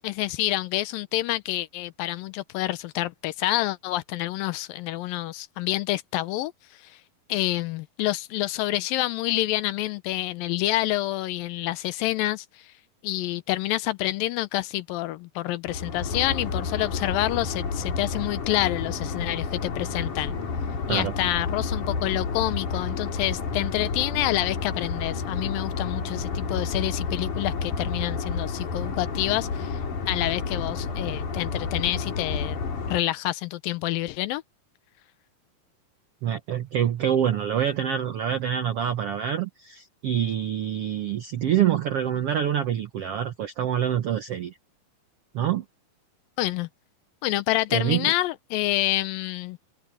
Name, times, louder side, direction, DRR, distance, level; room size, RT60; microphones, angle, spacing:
voice 1, 0.0-6.5 6.8-7.0 7.3-12.7 13.0-20.3 20.9-29.8 30.1-32.6 32.9-34.4 46.4-46.7 47.2-49.6, left 16 dB, 80° left, 2.4 m, -28 dB
sound 1, 15.7-33.0, left 4 dB, 55° left, 5.2 m, -30 dB
voice 2, 36.2-44.6 45.3-45.6 47.7-48.1, right 10 dB, 75° right, 1.3 m, -26 dB
omnidirectional pair, 4.2 m